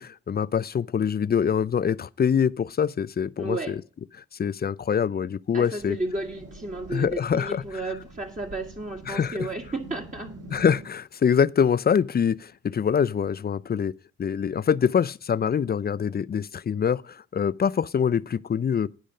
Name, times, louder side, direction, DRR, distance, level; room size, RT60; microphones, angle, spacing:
voice 1, 0.0-3.8 4.4-6.0 6.9-7.6 9.1-9.4 10.5-13.9 14.2-18.9, left 7 dB, 35° left, 0.4 m, -24 dB
voice 2, 3.4-3.8 5.5-10.4, right 2 dB, 25° right, 1.7 m, -33 dB
sound 1, 5.8-10.9, right 1 dB, 50° right, 2.9 m, -45 dB
10.0 x 5.2 x 6.5 m
supercardioid pair, 45°, 29 cm